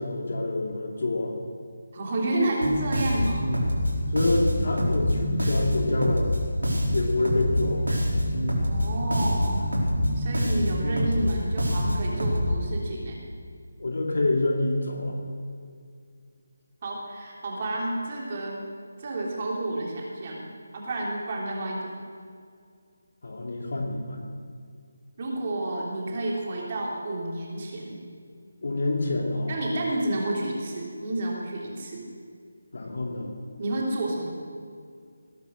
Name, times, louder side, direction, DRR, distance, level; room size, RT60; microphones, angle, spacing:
voice 1, 0.0-1.4 4.1-6.3 6.9-7.9 13.8-15.2 23.2-24.2 28.6-29.5 32.7-33.3, left 2 dB, 55° left, 1 dB, 2.8 m, -27 dB
voice 2, 1.9-3.4 8.6-9.6 10.1-13.2 16.8-18.6 19.0-20.4 20.7-21.9 25.2-28.0 29.5-32.0 33.6-34.3, right 1 dB, 35° right, -2 dB, 3.2 m, -30 dB
Bass guitar, 2.6-12.5, equal, 70° right, 4.5 m, -25 dB
20.0 x 10.5 x 6.4 m, 2.2 s
figure-of-eight pair, 155°, 0 cm